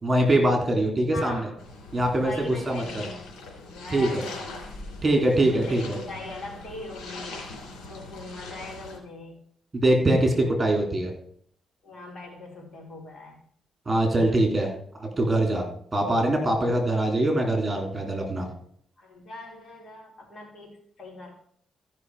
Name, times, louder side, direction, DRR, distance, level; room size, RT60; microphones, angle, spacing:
voice 1, 0.0-1.4 1.9-2.8 3.9-4.2 5.0-6.0 9.7-11.1 13.8-14.7 14.9-15.6 15.9-18.5, right 1 dB, 25° right, 3 dB, 3.3 m, -23 dB
voice 2, 1.1-1.6 2.2-3.3 3.7-4.7 5.4-7.4 7.9-9.4 11.8-13.4 19.0-21.4, left 2 dB, 45° left, -1 dB, 4.2 m, -41 dB
sound 1, 1.6-9.0, left 3 dB, 85° left, 3.1 m, -41 dB
14.0 x 5.8 x 4.9 m, 0.62 s
cardioid pair, 90°, 0 cm